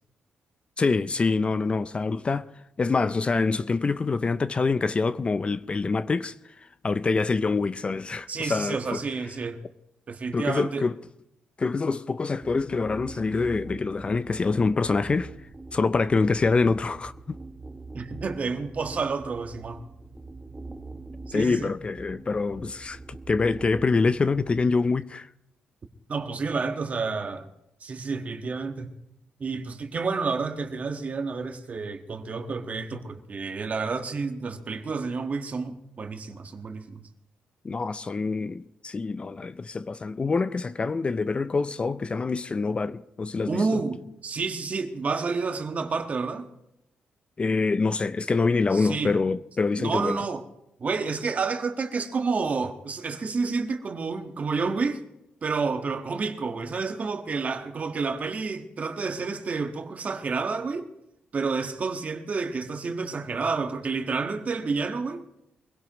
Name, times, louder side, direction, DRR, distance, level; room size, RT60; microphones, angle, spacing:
voice 1, 0.8-2.5 2.8-6.3 6.8-9.0 10.3-10.9 11.6-15.3 15.7-17.4 21.3-25.3 37.6-43.6 47.4-50.2, left 4 dB, 30° left, 0.5 m, -25 dB
voice 2, 8.3-9.6 10.1-10.8 17.9-19.8 21.3-21.7 26.1-27.5 27.8-28.9 29.4-37.0 43.5-46.5 48.7-49.1 49.8-50.5 50.8-55.0 55.4-60.9 61.3-65.2, right 4 dB, 45° right, 1.5 m, -30 dB
sound 1, 12.4-24.6, right 3 dB, 15° right, 1.1 m, -43 dB
23.5 x 17.0 x 3.1 m
cardioid pair, 90°, 4 cm